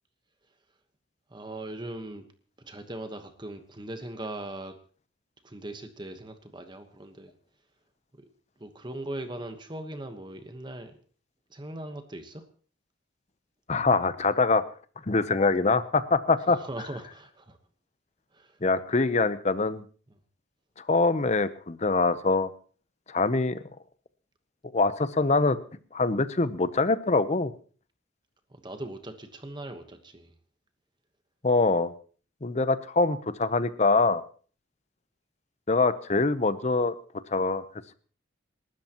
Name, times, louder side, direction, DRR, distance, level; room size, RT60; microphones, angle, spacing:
voice 1, 1.3-2.3 2.6-4.7 5.4-7.3 8.2-8.3 8.6-11.0 11.5-12.4 16.5-17.6 18.3-18.6 28.5-30.3, right 1 dB, 25° right, 7 dB, 1.2 m, -39 dB
voice 2, 13.7-14.6 15.1-16.6 18.6-19.8 20.9-22.5 23.1-23.6 24.7-25.6 25.9-27.5 31.4-31.9 32.4-34.2 35.7-36.9 37.3-37.6, left 3 dB, 35° left, 14 dB, 0.8 m, -24 dB
28.0 x 13.0 x 3.0 m, 0.40 s
head